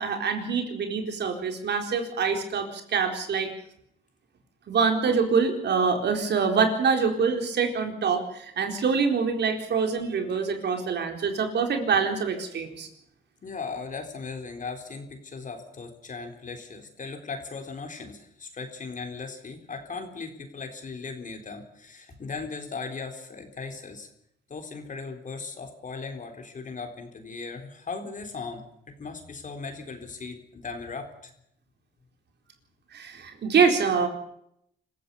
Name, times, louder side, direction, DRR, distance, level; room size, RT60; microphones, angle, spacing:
voice 1, 0.0-3.5 4.7-12.9 32.9-34.1, right 5 dB, 60° right, 4 dB, 4.2 m, -25 dB
voice 2, 13.4-24.1 24.5-31.3, left 4 dB, 40° left, 5 dB, 4.0 m, -38 dB
26.0 x 15.0 x 7.1 m, 0.74 s
cardioid pair, 90°, 20 cm